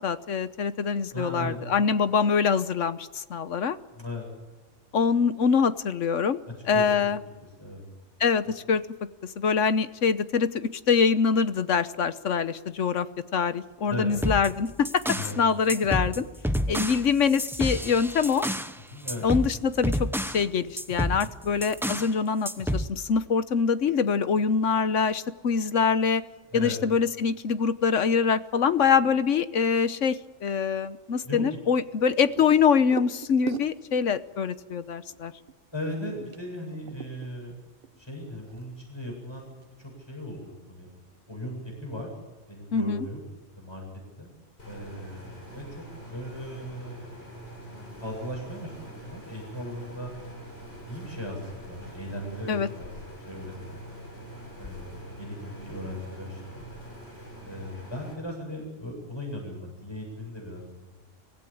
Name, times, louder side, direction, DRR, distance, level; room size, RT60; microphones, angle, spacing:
voice 1, 0.0-3.8 4.9-6.4 6.7-7.2 8.2-8.8 9.4-13.1 13.3-15.0 15.4-16.2 16.7-18.5 19.2-20.1 20.3-26.2 26.5-35.3 42.7-43.1 52.5-52.7, left 6 dB, 75° left, 13 dB, 1.3 m, -24 dB
voice 2, 1.1-1.6 3.9-4.2 6.5-6.9 7.6-7.8 8.5-8.6 13.8-14.1 15.1-15.4 18.8-19.2 26.5-26.8 31.2-31.6 35.7-37.5 38.0-39.6 40.1-40.9 41.3-42.1 42.5-43.2 43.6-43.8 44.2-44.3 44.7-47.1 47.8-50.1 50.9-52.9 53.3-53.8 54.6-56.6 57.4-61.0, left 1 dB, 20° left, 0 dB, 7.9 m, -37 dB
sound 1, 14.1-15.4 15.7-18.7 19.1-20.4 20.8-22.1 22.4-22.9, equal, ahead, 0.9 m, -30 dB
sound 2, 32.0-34.2 34.5-34.6 35.1-35.5 35.9-37.6 37.8-38.8 39.1-39.2 39.5-39.9, right 7 dB, 50° right, 1.2 m, -40 dB
sound 3, 44.6-58.1, right 1 dB, 55° left, 7.3 m, -44 dB
24.5 x 16.5 x 8.7 m, 1.2 s
omnidirectional pair, 1.3 m